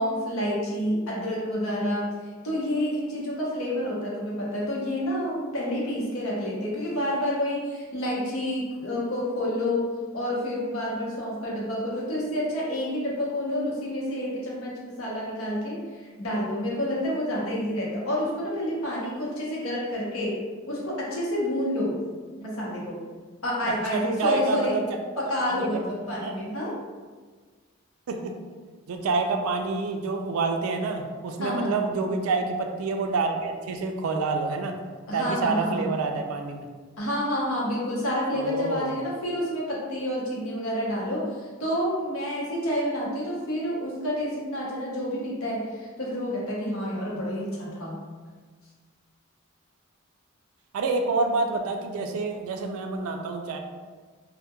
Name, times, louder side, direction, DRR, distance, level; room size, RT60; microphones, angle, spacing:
voice 1, 0.0-2.1 2.4-9.9 10.1-20.4 20.7-22.0 22.4-23.0 23.4-24.8 25.2-26.7 31.4-31.7 35.1-36.0 37.0-48.0, left 1 dB, 80° left, -5 dB, 0.7 m, -29 dB
voice 2, 23.9-24.8 25.2-25.8 26.2-26.4 28.1-28.3 28.9-34.8 35.1-36.7 38.3-39.0 50.7-53.6, right 4 dB, 85° right, 4 dB, 0.3 m, -28 dB
2.2 x 2.1 x 2.8 m, 1.5 s
head